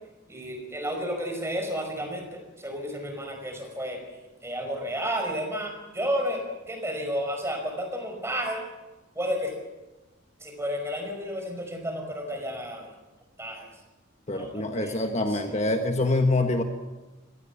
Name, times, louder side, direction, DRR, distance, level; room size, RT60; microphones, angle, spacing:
voice 1, 0.3-4.0 4.4-8.6 9.2-9.5 10.4-12.9 13.4-13.7 14.3-15.5, equal, 15° right, 4 dB, 5.3 m, -32 dB
voice 2, 14.3-16.6, left 2 dB, 35° left, 5 dB, 1.4 m, -25 dB
26.0 x 18.5 x 7.2 m, 1.2 s
head